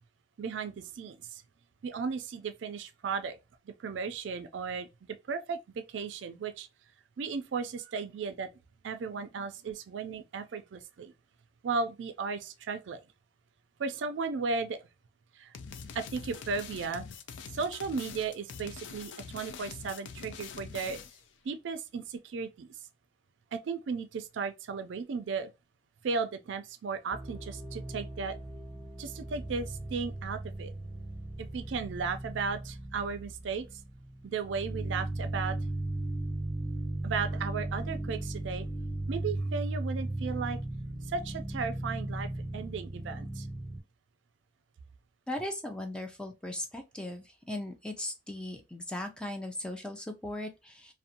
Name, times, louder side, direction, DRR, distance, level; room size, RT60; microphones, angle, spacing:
voice 1, 0.4-1.4 1.8-3.4 3.7-4.9 5.3-6.7 7.2-8.5 8.8-11.1 11.6-13.0 13.8-14.8 15.4-15.5 15.9-17.1 17.5-21.0 21.4-22.7 23.5-25.5 26.0-28.4 29.0-30.7 31.4-33.7 34.2-35.6 37.0-38.7 39.1-40.6 41.1-43.5, right 5 dB, 80° right, 0.4 m, -35 dB
sound 1, 15.5-21.3, left 6 dB, 80° left, 0.4 m, -44 dB
sound 2, 27.1-43.8, right 1 dB, 45° left, 1.4 m, -37 dB
voice 2, 45.3-50.9, left 1 dB, 5° left, 0.3 m, -38 dB
2.5 x 2.1 x 2.6 m
head